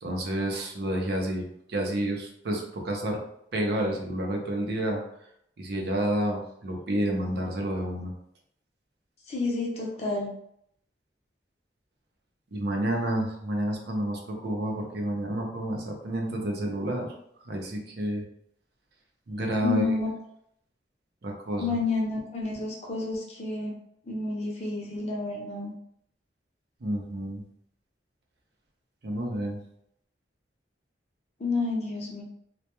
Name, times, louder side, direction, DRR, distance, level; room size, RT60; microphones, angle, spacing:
voice 1, 0.0-3.2 3.5-5.0 5.6-8.1 12.5-17.1 17.5-18.2 19.3-19.9 21.2-21.6 26.8-27.4 29.0-29.6, right 1 dB, 65° right, 0 dB, 0.6 m, -29 dB
voice 2, 9.3-10.3 19.6-20.1 21.6-23.7 24.1-25.7 31.4-32.2, left 3 dB, 40° left, -2 dB, 0.6 m, -30 dB
2.2 x 2.1 x 2.9 m, 0.72 s
head